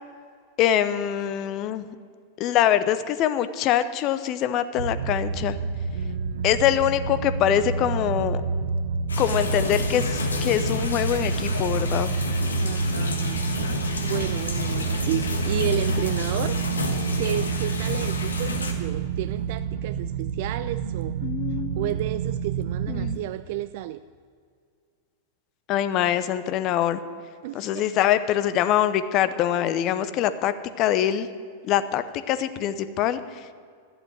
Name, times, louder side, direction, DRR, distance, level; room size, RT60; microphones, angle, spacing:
voice 1, 0.6-1.9 2.4-5.6 6.4-8.4 9.2-12.1 21.2-21.9 22.9-23.2 25.7-27.0 27.5-31.3 31.6-33.4, left 11 dB, 40° left, 13 dB, 0.7 m, -24 dB
sound 1, 4.8-23.2, right 5 dB, 70° right, 0.7 m, -28 dB
voice 2, 5.9-6.7 12.6-13.7 14.0-16.6 17.2-21.2 21.5-24.0 27.4-28.0, right 15 dB, 55° right, 12 dB, 0.3 m, -32 dB
sound 2, 9.1-18.7, left 4 dB, 80° left, 1.5 m, -30 dB
11.5 x 7.8 x 9.0 m, 2.1 s
figure-of-eight pair, 95°, 0 cm